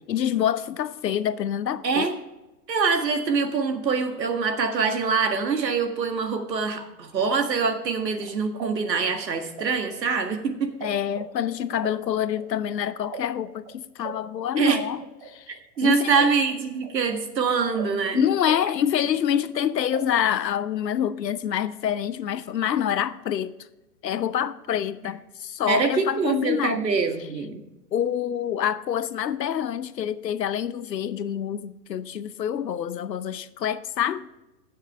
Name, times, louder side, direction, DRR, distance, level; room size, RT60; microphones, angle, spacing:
voice 1, 0.1-2.1 10.8-16.1 18.1-23.5 24.0-26.8 27.9-34.3, left 9 dB, 85° left, 0.8 m, -26 dB
voice 2, 2.7-10.7 14.6-14.8 15.8-18.2 25.7-27.6, right 5 dB, 85° right, 1.8 m, -24 dB
sound 1, 7.9-10.9 11.1-15.8 16.2-18.7 19.0-20.6, right 6 dB, 35° right, 1.4 m, -40 dB
16.0 x 6.5 x 3.4 m
hypercardioid pair, 135°, 49 cm